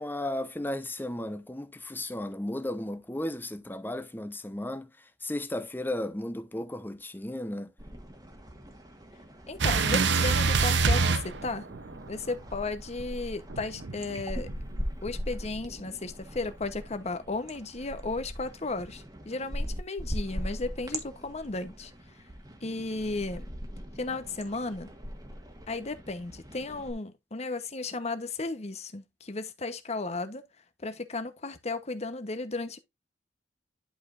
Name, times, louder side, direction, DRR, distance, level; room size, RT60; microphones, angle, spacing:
voice 1, 0.0-4.9 5.2-7.7, left 1 dB, 10° left, 0.8 m, -34 dB
sound 1, 7.8-11.0 11.2-26.9, equal, 20° right, 1.6 m, -40 dB
voice 2, 9.5-11.7 12.1-14.5 15.0-22.3 22.6-23.4 23.9-24.9 25.7-30.4 30.8-32.8, left 3 dB, 35° left, 1.0 m, -35 dB
sound 2, 9.6-12.1 13.5-14.8, right 4 dB, 75° right, 0.8 m, -26 dB
11.0 x 5.0 x 2.5 m
head